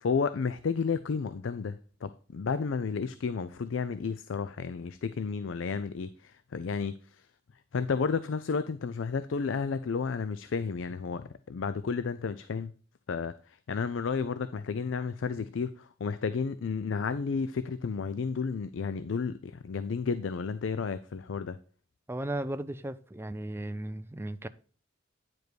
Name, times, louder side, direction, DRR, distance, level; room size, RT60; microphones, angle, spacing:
voice 1, 0.0-7.3 7.7-12.7 13.1-21.6, left 5 dB, 70° left, 0.4 m, -32 dB
voice 2, 22.1-24.5, right 1 dB, 10° right, 0.4 m, -35 dB
9.5 x 5.1 x 4.5 m
head